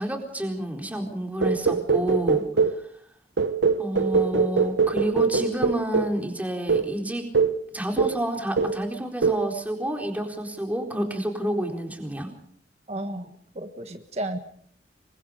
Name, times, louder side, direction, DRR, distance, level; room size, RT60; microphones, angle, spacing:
voice 1, 0.0-2.4 2.7-2.9 3.8-7.3 7.7-12.3, right 1 dB, 10° right, 3 dB, 4.1 m, -29 dB
sound 1, 1.4-2.8 3.4-6.2 6.7-6.9 7.3-7.6 8.0-8.3 8.6-8.9 9.2-9.5, right 5 dB, 85° right, 1.0 m, -23 dB
voice 2, 12.9-14.4, right 1 dB, 35° right, 6 dB, 1.5 m, -33 dB
27.5 x 24.0 x 5.2 m, 0.63 s
head